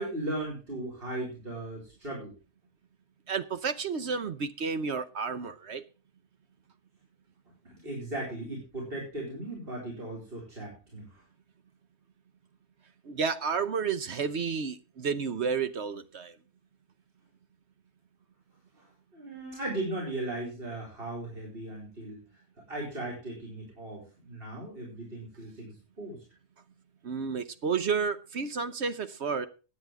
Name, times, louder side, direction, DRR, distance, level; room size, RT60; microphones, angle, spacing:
voice 1, 0.0-2.3 7.8-11.2 18.7-22.2 22.7-26.2, right 1 dB, 40° right, 4.8 m, -37 dB
voice 2, 3.3-5.8 13.0-16.4 27.0-29.5, right 5 dB, 55° right, 1.0 m, -31 dB
16.0 x 9.7 x 3.5 m
omnidirectional pair, 1.6 m